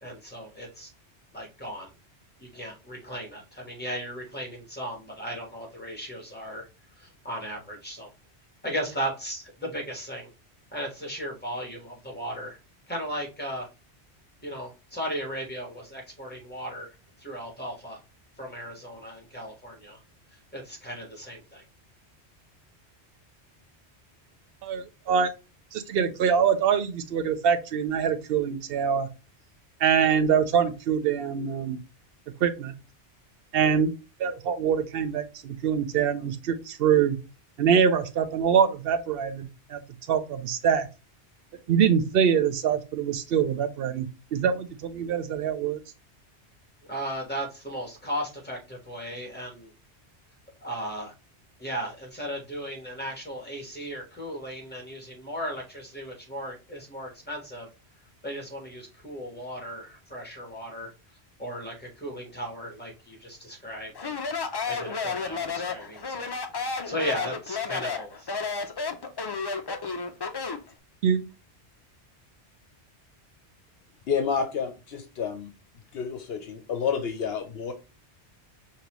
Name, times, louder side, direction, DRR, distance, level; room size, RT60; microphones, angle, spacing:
voice 1, 0.0-0.9 1.3-1.9 2.4-6.7 7.0-8.1 8.6-10.3 10.7-12.6 12.9-13.7 14.4-16.9 17.2-18.0 18.4-20.0 20.5-21.6 46.9-49.7 50.6-51.1 51.6-57.7 58.2-60.9 61.4-64.2 64.7-66.3 66.8-68.4, equal, 10° left, 0 dB, 1.2 m, -36 dB
voice 2, 24.6-25.3 25.7-29.1 29.8-31.8 32.4-32.7 33.5-33.9 34.2-37.2 37.6-39.8 40.1-40.9 41.7-45.8 71.0-71.2, right 7 dB, 65° right, 9 dB, 0.8 m, -24 dB
Speech, 64.0-70.7, left 4 dB, 45° left, 0.3 m, -32 dB
voice 3, 74.1-75.5 75.9-77.7, left 6 dB, 65° left, 7 dB, 0.8 m, -29 dB
5.2 x 2.8 x 3.0 m, 0.29 s
omnidirectional pair, 1.2 m